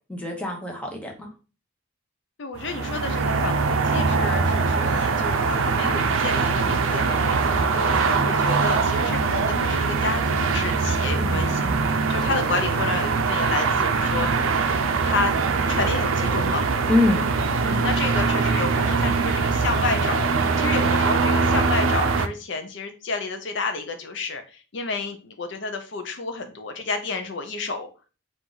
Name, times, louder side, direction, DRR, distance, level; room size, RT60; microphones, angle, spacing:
voice 1, 0.1-1.3 11.2-11.9 16.9-17.3, left 2 dB, 5° left, 1 dB, 0.8 m, -25 dB
voice 2, 2.4-11.7 12.1-14.3 15.0-15.3 15.7-16.6 17.6-27.9, left 4 dB, 55° left, 6 dB, 0.5 m, -30 dB
sound 1, 2.6-22.3, right 4 dB, 75° right, 0.5 m, -22 dB
4.5 x 2.5 x 3.8 m, 0.34 s
head